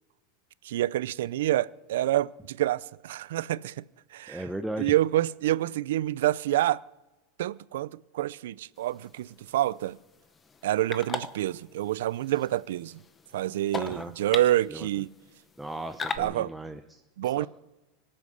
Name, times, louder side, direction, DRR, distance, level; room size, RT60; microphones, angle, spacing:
voice 1, 0.6-3.8 4.1-4.4 4.8-6.8 7.4-10.0 10.6-13.0 13.3-15.1 16.2-16.5 17.2-17.5, right 14 dB, 80° right, 0.5 m, -27 dB
voice 2, 4.3-5.0 13.7-14.1 14.7-14.9 15.6-17.5, right 1 dB, 5° right, 0.6 m, -37 dB
sound 1, 8.8-16.2, left 5 dB, 15° left, 0.9 m, -41 dB
24.5 x 8.7 x 6.4 m
supercardioid pair, 165°, 0 cm